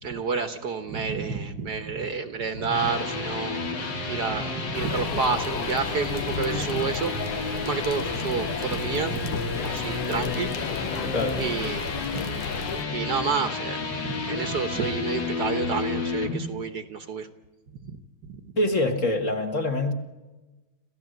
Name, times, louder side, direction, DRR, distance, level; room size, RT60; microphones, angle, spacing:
voice 1, 0.0-3.6 4.1-10.8 11.1-11.2 11.4-11.9 12.9-17.3 17.8-18.0 18.2-18.4, right 5 dB, 55° right, 9 dB, 1.6 m, -30 dB
sound 1, 2.4-16.4, left 3 dB, 55° left, 3.1 m, -31 dB
sound 2, 4.7-12.8, left 7 dB, 90° left, 2.0 m, -34 dB
voice 2, 18.6-19.9, left 2 dB, 35° left, 4 dB, 1.9 m, -25 dB
27.5 x 15.5 x 7.9 m, 1.2 s
omnidirectional pair, 2.3 m